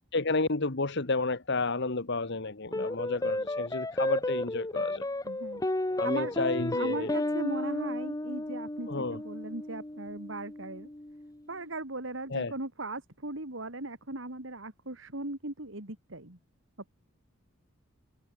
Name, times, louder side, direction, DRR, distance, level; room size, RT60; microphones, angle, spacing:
voice 1, 0.1-5.0 6.0-7.1 8.9-9.2 12.3-12.5, left 3 dB, 60° left, 1.6 m, -31 dB
sound 1, 2.7-11.3, left 2 dB, 15° left, 1.0 m, -33 dB
voice 2, 5.2-5.6 6.0-6.5 6.7-10.9 11.5-16.4, right 2 dB, 65° right, 3.4 m, -38 dB
head